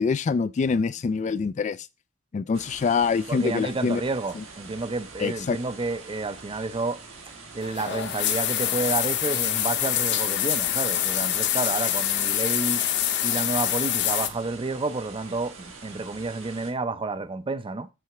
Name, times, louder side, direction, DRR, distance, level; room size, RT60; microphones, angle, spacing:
voice 1, 0.0-1.9 2.3-4.0 4.3-4.4 5.2-5.6, left 5 dB, 35° left, 0.3 m, -25 dB
sound 1, 2.5-16.7, right 4 dB, 75° right, 1.9 m, -45 dB
voice 2, 3.3-7.0 7.5-12.8 13.2-17.9, right 3 dB, 25° right, 0.5 m, -30 dB
sound 2, 7.6-14.3, left 11 dB, 60° left, 0.7 m, -25 dB
7.6 x 3.3 x 5.9 m
head